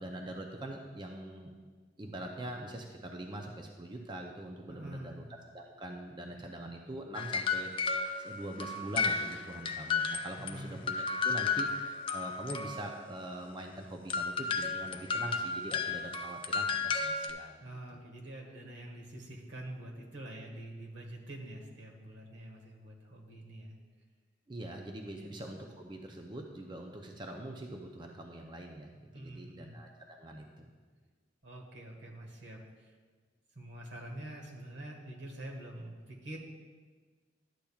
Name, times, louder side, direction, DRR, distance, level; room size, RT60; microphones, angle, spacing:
voice 1, 0.0-1.5 2.0-5.2 5.5-17.6 24.5-30.7, right 1 dB, 25° right, 2 dB, 0.5 m, -43 dB
voice 2, 4.7-5.2 6.3-6.6 10.4-10.9 17.6-23.8 25.2-25.3 29.1-29.8 31.4-32.9 33.5-36.4, right 1 dB, 75° right, 0 dB, 1.5 m, -46 dB
sound 1, 7.1-10.6 10.9-13.0 14.1-17.3, left 5 dB, 30° left, 0.4 m, -33 dB
11.5 x 8.5 x 2.3 m, 1.4 s
head